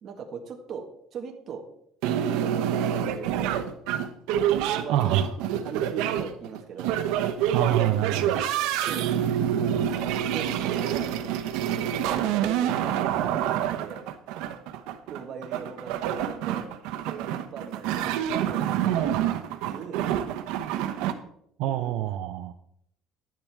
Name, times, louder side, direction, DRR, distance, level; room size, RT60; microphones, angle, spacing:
voice 1, 0.0-0.8 1.1-1.7 2.2-3.7 4.4-7.0 8.8-9.0 9.6-11.4 11.7-14.0 15.1-16.7 17.1-20.0 21.6-22.0, right 6 dB, 40° right, 3 dB, 1.7 m, -40 dB
sound 1, 2.0-21.1, right 10 dB, 85° right, 1.0 m, -27 dB
voice 2, 4.9-5.3 7.5-8.5 21.6-22.5, right 12 dB, 70° right, 6 dB, 0.6 m, -26 dB
11.5 x 10.5 x 3.5 m, 0.71 s
cardioid pair, 165°, 0 cm